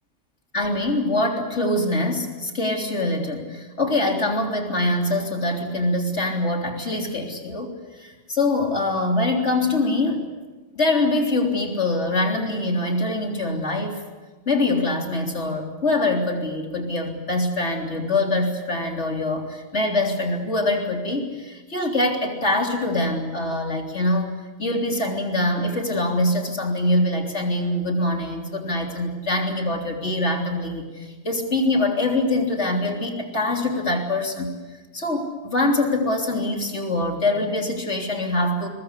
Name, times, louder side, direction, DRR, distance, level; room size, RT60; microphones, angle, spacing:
voice 1, 0.5-10.3 10.8-14.0 14.5-24.3 24.6-34.5 34.9-38.7, left 2 dB, 75° left, 1 dB, 3.8 m, -24 dB
22.0 x 22.0 x 8.3 m, 1.3 s
omnidirectional pair, 1.2 m